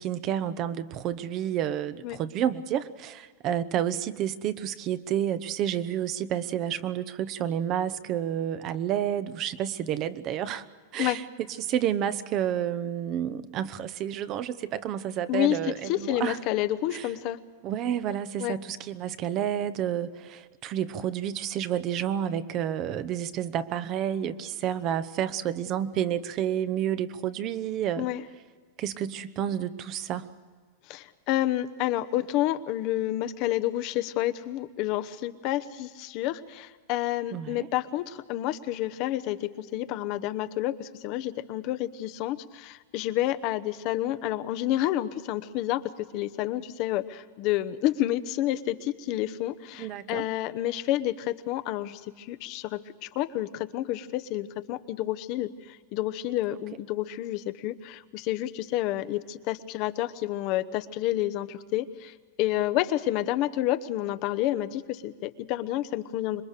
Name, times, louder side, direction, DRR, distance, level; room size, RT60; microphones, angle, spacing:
voice 1, 0.0-10.7 10.9-11.2 11.6-16.4 16.9-17.1 17.6-28.1 28.8-30.3 37.3-37.7 49.8-50.2 56.5-56.6, right 10 dB, 40° right, 13 dB, 0.9 m, -30 dB
voice 2, 15.3-17.4 18.4-18.6 28.0-28.2 30.9-66.4, left 14 dB, 50° left, 11 dB, 0.9 m, -29 dB
26.0 x 21.5 x 6.7 m, 1.6 s
supercardioid pair, 140°, 0 cm